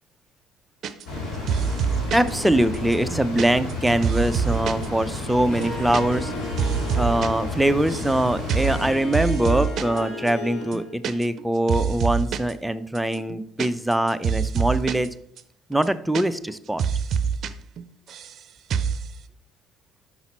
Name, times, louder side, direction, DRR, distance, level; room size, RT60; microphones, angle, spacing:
sound 1, 0.8-1.2 1.5-2.3 2.7-4.9 5.1-5.2 5.5-6.0 6.3-7.3 7.5-8.2 8.5-8.8 9.1-10.0 10.3-10.4 10.6-11.4 11.7-12.5 12.9-15.1 15.4-15.5 15.7-16.5 16.8-17.5 17.8-18.4 18.7-19.0, right 7 dB, 55° right, 0.6 m, -26 dB
sound 2, 1.0-8.9, left 2 dB, 65° left, 2.9 m, -32 dB
voice 1, 2.1-6.3 6.9-15.1 15.7-16.8, right 1 dB, 5° right, 12 dB, 0.5 m, -23 dB
Harp, 5.5-11.0, left 2 dB, 40° left, 3.3 m, -35 dB
6.0 x 5.6 x 4.3 m, 0.65 s
hypercardioid pair, 70°, 0 cm